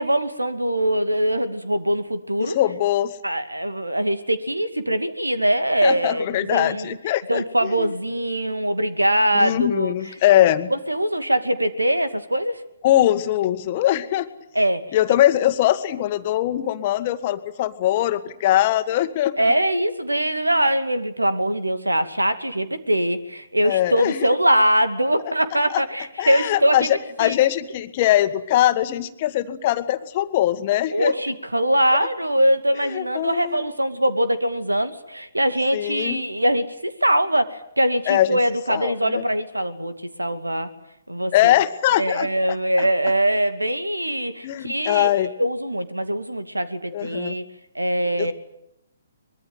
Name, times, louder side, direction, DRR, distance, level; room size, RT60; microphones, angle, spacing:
voice 1, 0.0-2.6 3.2-7.0 7.3-9.9 10.7-12.6 14.5-15.0 19.4-26.9 27.2-27.4 30.9-40.7 41.1-41.5 41.9-47.4 47.7-48.3, right 1 dB, 85° right, 11 dB, 2.4 m, -22 dB
voice 2, 2.4-3.1 5.8-7.4 7.8-7.9 9.3-10.7 12.8-14.3 14.9-19.3 23.6-24.3 25.7-25.8 26.2-31.1 32.9-33.6 35.7-36.2 38.1-38.4 38.7-39.2 41.3-42.3 44.4-45.3 46.9-47.4 48.2-48.3, left 13 dB, 35° left, 10 dB, 1.7 m, -21 dB
24.0 x 22.5 x 9.2 m, 0.79 s
figure-of-eight pair, 130°, 0 cm